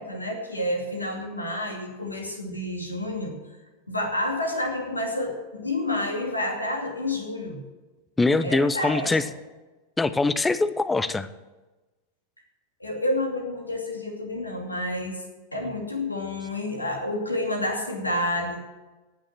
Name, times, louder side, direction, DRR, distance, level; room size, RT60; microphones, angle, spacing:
voice 1, 0.0-3.3 3.9-7.6 8.4-9.3 12.8-15.2 15.5-18.7, left 1 dB, 80° left, 2 dB, 2.5 m, -29 dB
voice 2, 8.2-9.2 10.0-11.3, left 3 dB, 10° left, 15 dB, 0.7 m, -23 dB
18.0 x 6.5 x 7.7 m, 1.2 s
figure-of-eight pair, 90°, 0 cm